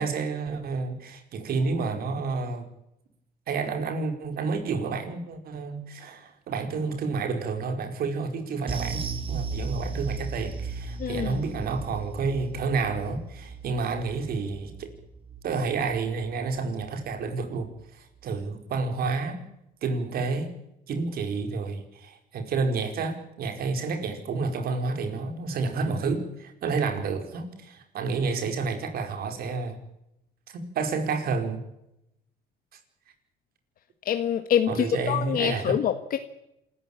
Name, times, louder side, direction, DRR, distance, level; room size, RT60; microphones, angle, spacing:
voice 1, 0.0-2.7 3.5-9.0 9.3-14.9 15.4-19.4 19.8-20.5 20.9-29.8 30.5-31.6 34.7-35.7, right 4 dB, 65° right, 6 dB, 5.0 m, -30 dB
sound 1, 8.7-17.3 17.6-17.8 18.2-18.3, right 4 dB, 30° right, 3.0 m, -36 dB
voice 2, 11.0-11.4 34.1-36.2, left 9 dB, 60° left, 8 dB, 1.7 m, -25 dB
27.5 x 14.5 x 8.9 m, 0.84 s
cardioid pair, 110°, 17 cm